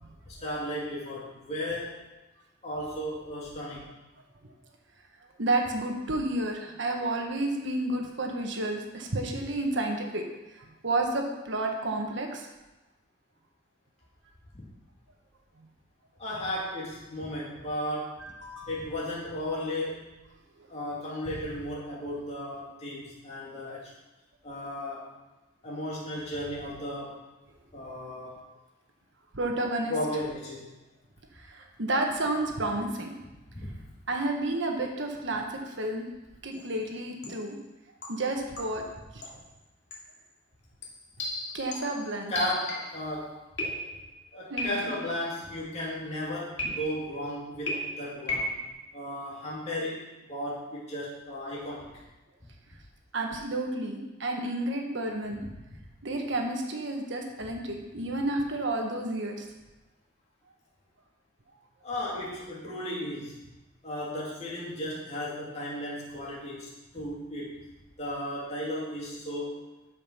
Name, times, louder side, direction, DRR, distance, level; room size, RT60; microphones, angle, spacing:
voice 1, 0.2-2.0 2.6-4.0 16.2-18.2 18.7-20.0 20.7-23.9 24.4-25.1 25.6-27.2 27.7-28.3 29.9-30.7 33.5-33.7 42.3-43.7 44.3-48.6 48.9-51.9 61.8-63.4 63.8-67.6 68.0-69.6, left 1 dB, 35° left, -6 dB, 2.8 m, -35 dB
voice 2, 5.4-10.3 10.5-12.5 18.2-18.7 20.6-20.7 29.3-29.9 31.4-33.2 34.1-36.1 36.4-37.6 38.1-38.8 39.1-39.2 41.5-42.3 44.5-45.0 53.1-55.4 56.0-59.5, right 2 dB, 60° right, 2 dB, 1.5 m, -31 dB
sound 1, 36.5-36.8 37.2-37.5 38.0-38.9 39.2-39.5 39.9-40.2 40.8-43.1 43.6-44.2 44.6-45.1 46.6-47.2 47.7-48.7, left 1 dB, 60° left, 2.5 m, -36 dB
12.0 x 5.5 x 5.7 m, 1.0 s
head